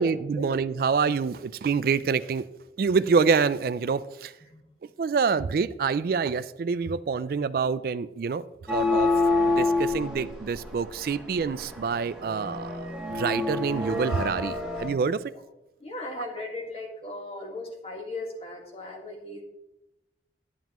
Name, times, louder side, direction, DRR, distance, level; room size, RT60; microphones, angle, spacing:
voice 1, 0.0-2.4 2.8-4.3 5.0-8.4 8.7-9.1 9.5-12.9 13.1-15.2 16.2-16.3, right 5 dB, 55° right, 16 dB, 0.3 m, -26 dB
sound 1, 8.7-14.9, left 3 dB, 5° right, 1.2 m, -27 dB
voice 2, 15.8-19.4, left 2 dB, 35° left, -1 dB, 1.5 m, -37 dB
9.3 x 9.2 x 3.0 m, 0.96 s
head